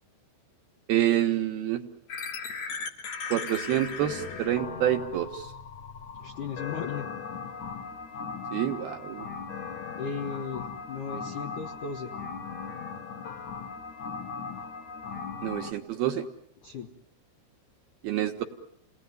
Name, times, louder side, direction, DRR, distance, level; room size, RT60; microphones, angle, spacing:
voice 1, 0.9-1.8 3.3-5.5 8.5-9.3 15.4-16.3 18.0-18.4, right 12 dB, 70° right, 4 dB, 2.6 m, -27 dB
sound 1, 2.1-15.7, left 5 dB, 55° left, 2.2 m, -38 dB
voice 2, 6.2-7.1 10.0-12.1 16.6-16.9, left 5 dB, 75° left, 5 dB, 1.9 m, -36 dB
29.0 x 19.0 x 9.4 m, 0.76 s
omnidirectional pair, 5.6 m